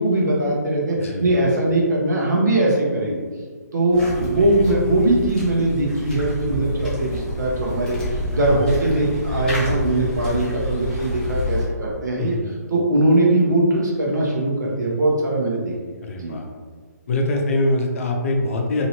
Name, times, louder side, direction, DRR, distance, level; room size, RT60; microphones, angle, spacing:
voice 1, 0.0-3.2 3.7-12.4 12.7-15.7 16.1-16.3, right 1 dB, 85° right, -3 dB, 1.0 m, -20 dB
sound 1, 3.9-11.7, left 1 dB, 5° left, 0.5 m, -28 dB
voice 2, 16.0-16.5 17.1-18.9, left 2 dB, 50° left, 1 dB, 0.6 m, -23 dB
2.9 x 2.7 x 2.8 m, 1.5 s
hypercardioid pair, 160°, 9 cm